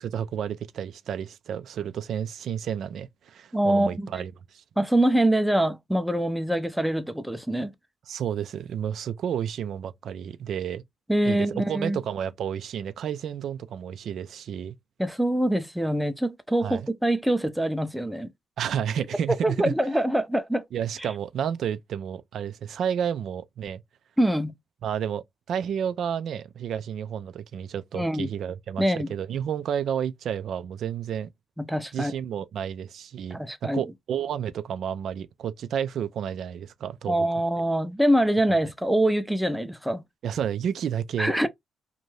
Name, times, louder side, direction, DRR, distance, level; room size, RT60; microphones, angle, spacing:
voice 1, 0.0-4.6 8.1-10.8 11.2-14.8 16.6-16.9 18.6-19.7 20.7-23.8 24.8-31.3 31.9-37.3 40.2-41.5, right 8 dB, 65° right, 0.4 m, -31 dB
voice 2, 3.5-4.3 4.8-7.7 11.1-12.0 15.0-18.3 19.4-20.6 21.0-21.1 24.2-24.5 27.9-28.3 28.8-29.1 31.6-32.1 33.3-33.8 37.1-40.0 41.2-41.5, right 1 dB, ahead, 0.5 m, -24 dB
2.7 x 2.2 x 3.1 m
cardioid pair, 90°, 0 cm